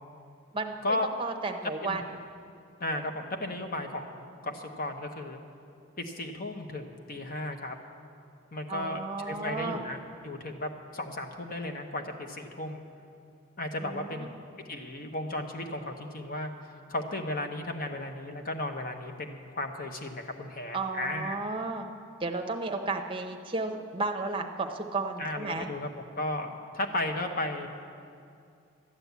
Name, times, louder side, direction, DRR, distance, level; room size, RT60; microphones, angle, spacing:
voice 1, 0.5-2.0 8.7-9.8 13.8-14.3 20.7-21.9 22.2-25.7, right 3 dB, 25° right, 4 dB, 0.8 m, -33 dB
voice 2, 2.8-5.4 6.0-7.8 8.5-10.0 10.2-12.9 13.6-14.3 14.7-16.5 16.9-21.4 25.2-27.7, left 1 dB, 40° left, 5 dB, 1.0 m, -35 dB
12.5 x 8.9 x 8.2 m, 2.4 s
head